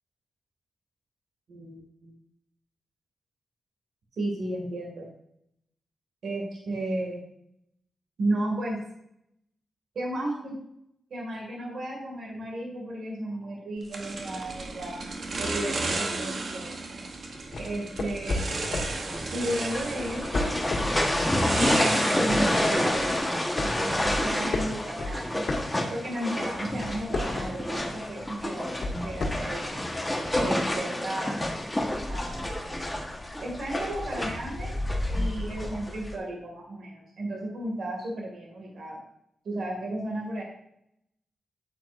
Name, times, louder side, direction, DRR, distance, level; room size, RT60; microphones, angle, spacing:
voice 1, 1.5-2.2 4.1-5.1 6.2-7.2 8.2-8.8 10.0-10.6 11.1-15.0 15.4-16.8 17.6-18.4 19.3-20.6 21.6-23.2 23.6-25.4 25.9-28.8 29.0-29.8 30.4-31.5 32.1-32.8 33.4-34.7 35.1-39.0 39.4-40.4, right 1 dB, 75° right, -1 dB, 2.0 m, -33 dB
sound 1, 13.9-24.0, right 3 dB, 55° right, 0.8 m, -34 dB
sound 2, 17.3-19.0 20.0-21.4 21.9-22.1 22.5-23.2 23.6-26.2 26.5-27.7 28.5-29.6 30.3-30.4, left 2 dB, 60° left, 1.7 m, -32 dB
sound 3, 18.5-36.1, left 1 dB, 10° left, 1.1 m, -29 dB
8.5 x 8.1 x 2.5 m, 0.76 s
wide cardioid pair, 125°, 0 cm